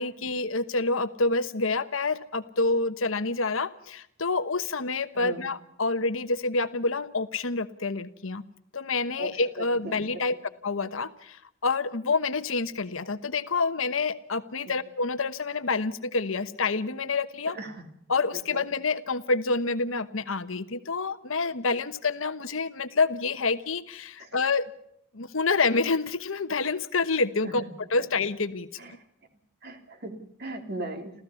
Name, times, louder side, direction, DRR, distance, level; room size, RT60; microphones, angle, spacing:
voice 1, 0.0-8.4 8.7-10.4 10.6-17.6 18.1-24.7 25.1-27.6 27.9-28.7, left 3 dB, 75° left, 12 dB, 1.2 m, -27 dB
voice 2, 9.6-10.0 17.6-17.8 24.2-24.3 27.4-27.7 28.8-28.9 29.6-31.1, right 2 dB, 50° right, 6 dB, 3.2 m, -37 dB
28.0 x 15.0 x 7.1 m, 0.72 s
head